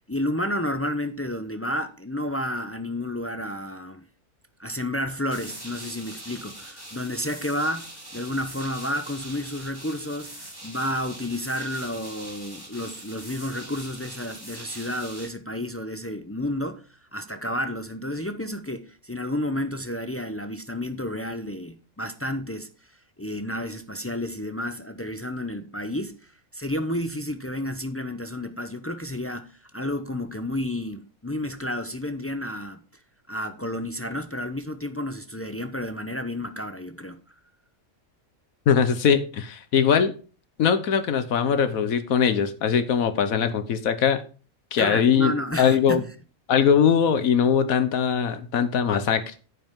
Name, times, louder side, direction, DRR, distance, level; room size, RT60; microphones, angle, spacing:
voice 1, 0.1-4.0 4.6-10.3 10.6-16.9 17.1-22.7 23.2-26.2 26.5-32.8 33.3-37.2 44.8-46.1, left 1 dB, 20° left, 0.4 m, -31 dB
sound 1, 5.3-15.3, right 1 dB, 15° right, 3.2 m, -42 dB
voice 2, 38.7-40.1 40.6-44.2 44.7-45.3 45.6-46.0 46.5-49.3, left 7 dB, 80° left, 1.4 m, -21 dB
9.8 x 8.1 x 3.7 m
omnidirectional pair, 1.5 m